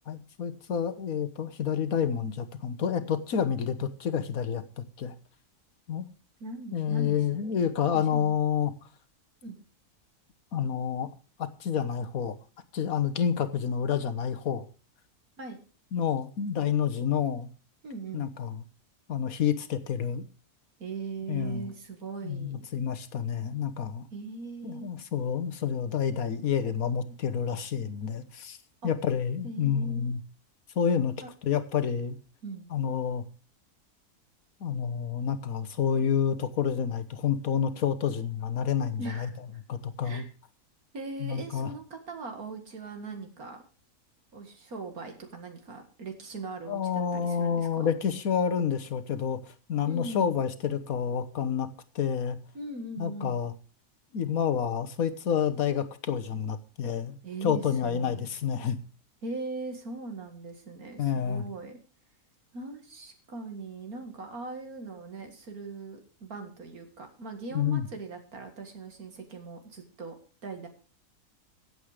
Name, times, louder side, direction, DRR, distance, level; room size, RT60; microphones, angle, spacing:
voice 1, 0.1-5.1 5.9-6.1 6.7-8.7 10.5-11.1 11.4-12.4 12.7-14.6 15.9-17.5 18.1-18.6 19.1-20.2 21.3-21.7 22.2-24.1 24.6-28.6 28.8-30.2 30.7-31.1 31.4-32.2 32.7-33.2 34.6-39.3 39.7-40.2 41.2-41.7 46.7-51.7 51.9-52.4 53.0-53.5 54.1-58.8 61.0-61.4 67.5-67.9, left 8 dB, 70° left, 10 dB, 1.6 m, -29 dB
voice 2, 6.4-7.2 7.5-8.3 9.4-9.6 15.4-15.6 17.8-18.3 20.8-22.7 24.1-24.9 28.8-28.9 29.4-30.1 31.2-31.3 32.4-32.7 39.0-39.6 40.0-40.3 40.9-43.6 44.3-47.9 49.9-50.3 52.5-53.5 57.2-58.2 59.2-61.8 62.5-70.2 70.4-70.7, right 3 dB, 70° right, 5 dB, 2.4 m, -40 dB
15.5 x 8.0 x 5.0 m, 0.36 s
omnidirectional pair, 1.6 m